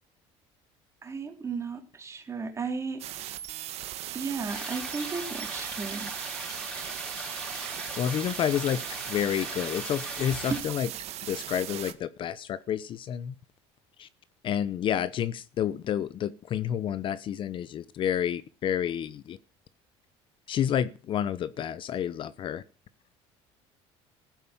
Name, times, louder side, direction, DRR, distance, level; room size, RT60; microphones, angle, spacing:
voice 1, 1.0-3.0 4.1-6.1 10.5-10.6, right 4 dB, 25° right, 3.2 m, -34 dB
sound 1, 3.0-11.9, right 13 dB, 60° right, 1.6 m, -38 dB
sound 2, 4.5-10.6, equal, 5° left, 4.5 m, -40 dB
voice 2, 8.0-8.8 9.1-10.9 11.3-13.3 14.0-14.1 14.4-19.4 20.5-22.6, left 9 dB, 45° left, 0.8 m, -29 dB
15.5 x 9.3 x 7.3 m
cardioid pair, 130°, 12 cm